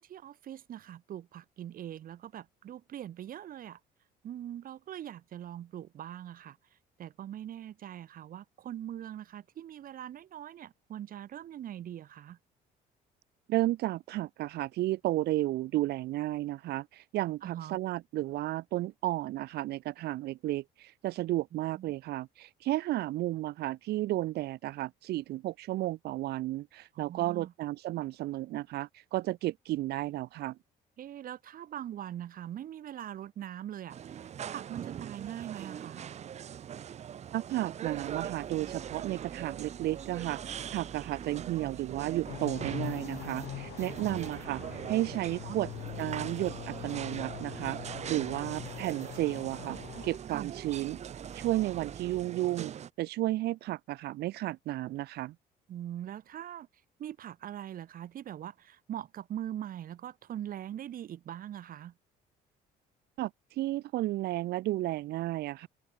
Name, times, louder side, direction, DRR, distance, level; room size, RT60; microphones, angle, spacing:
voice 1, 0.0-3.8 4.2-6.6 7.0-12.4 17.4-17.8 21.7-21.9 26.9-27.5 31.0-34.2 34.5-36.1 44.0-44.2 45.4-45.6 50.3-50.5 55.7-56.7 57.0-61.9, right 11 dB, 55° right, 2.5 m, -42 dB
voice 2, 13.5-30.6 37.3-45.7 46.0-47.8 48.1-49.8 50.0-51.0 51.3-52.7 53.0-55.3 63.2-63.3 63.6-65.7, right 16 dB, 70° right, 0.9 m, -33 dB
sound 1, 33.9-52.9, right 9 dB, 40° right, 0.7 m, -42 dB
sound 2, 37.8-52.2, right 3 dB, 15° right, 2.5 m, -54 dB
sound 3, 42.3-50.2, left 18 dB, 75° left, 0.7 m, -43 dB
cardioid pair, 110°, 17 cm